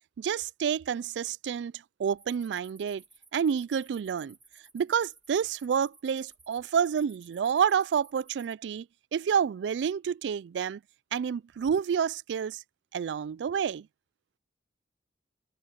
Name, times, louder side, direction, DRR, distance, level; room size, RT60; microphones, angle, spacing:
voice 1, 0.2-3.0 3.3-4.4 4.7-8.9 9.1-10.8 11.1-12.6 12.9-13.9, right 7 dB, 75° right, 0.3 m, -29 dB
sound 1, 2.2-8.5, right 3 dB, 10° right, 2.9 m, -59 dB
head